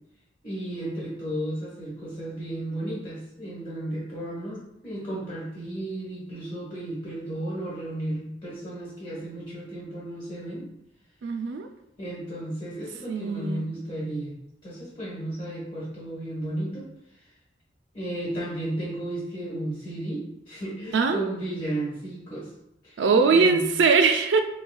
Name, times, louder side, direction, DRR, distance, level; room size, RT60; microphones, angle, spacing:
voice 1, 0.4-10.7 12.0-14.3 14.6-16.9 17.9-22.5 22.8-23.6, right 1 dB, 25° left, -6 dB, 1.4 m, -34 dB
voice 2, 11.2-11.7 13.1-13.7 20.9-21.2 23.0-24.4, right 4 dB, 70° right, 7 dB, 0.4 m, -21 dB
5.4 x 2.2 x 2.3 m, 0.81 s
head